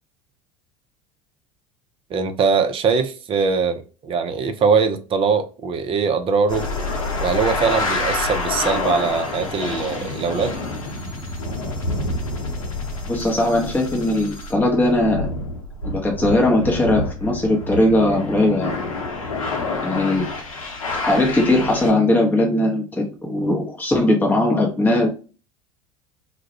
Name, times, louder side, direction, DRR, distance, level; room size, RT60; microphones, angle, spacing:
voice 1, 2.1-6.7 7.2-10.6, right 5 dB, 35° right, 0.5 m, -21 dB
sound 1, 6.5-21.9, left 2 dB, 85° left, 0.6 m, -28 dB
voice 2, 13.1-15.3 15.9-18.9 19.8-20.3 20.9-25.1, left 1 dB, 10° left, 0.7 m, -19 dB
2.3 x 2.1 x 2.7 m
hypercardioid pair, 75°, 17 cm